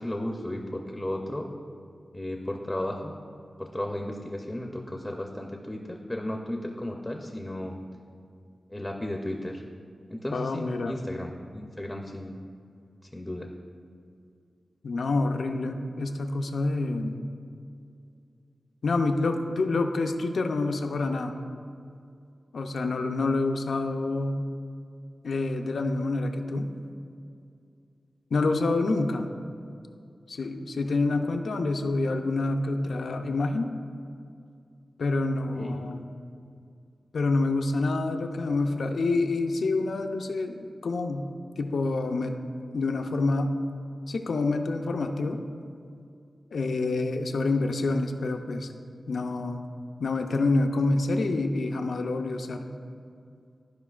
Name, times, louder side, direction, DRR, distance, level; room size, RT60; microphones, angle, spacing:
voice 1, 0.0-1.5 2.1-3.2 3.6-7.8 8.7-9.6 10.1-12.4 13.1-13.5 35.5-35.8, left 1 dB, 10° left, 2 dB, 0.5 m, -34 dB
voice 2, 10.3-10.9 14.8-17.2 18.8-21.3 22.5-24.5 25.2-26.7 28.3-29.3 30.3-33.7 35.0-36.0 37.1-41.3 41.6-42.3 42.7-43.6 44.1-45.4 46.5-48.7 49.1-49.7 50.0-52.7, left 3 dB, 80° left, 5 dB, 0.5 m, -27 dB
12.5 x 5.0 x 2.4 m, 2.4 s
wide cardioid pair, 95°, 0 cm